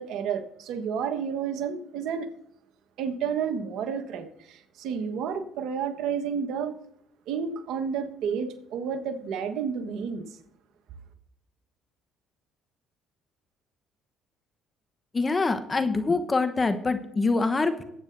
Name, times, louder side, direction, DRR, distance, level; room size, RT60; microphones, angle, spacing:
voice 1, 0.0-2.3 3.0-6.7 7.3-10.2, right 7 dB, 70° right, 7 dB, 1.3 m, -31 dB
voice 2, 15.1-17.8, left 3 dB, 25° left, 9 dB, 1.0 m, -25 dB
19.5 x 8.7 x 2.7 m, 0.77 s
supercardioid pair, 70°, 0 cm